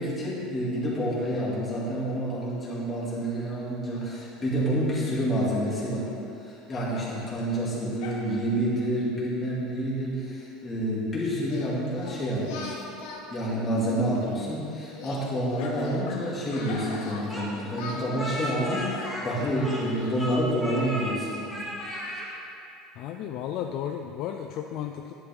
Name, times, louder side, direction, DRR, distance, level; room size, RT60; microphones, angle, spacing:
voice 1, 0.0-6.1 6.4-12.8 13.3-21.7, equal, 15° left, -6 dB, 2.4 m, -28 dB
sound 1, 6.7-7.5 8.0-8.6 15.6-17.4 18.0-18.1 18.7-19.3, left 3 dB, 65° left, 1.6 m, -41 dB
Singing, 11.4-14.5 14.9-17.4 17.7-20.3, left 3 dB, 90° left, 2.1 m, -42 dB
Speech, 17.3-19.9 20.2-21.2 21.5-22.3, equal, ahead, 2.0 m, -35 dB
voice 2, 23.0-25.1, left 9 dB, 45° left, 4 dB, 0.5 m, -34 dB
13.0 x 11.0 x 3.6 m, 2.7 s
cardioid pair, 175°, 0 cm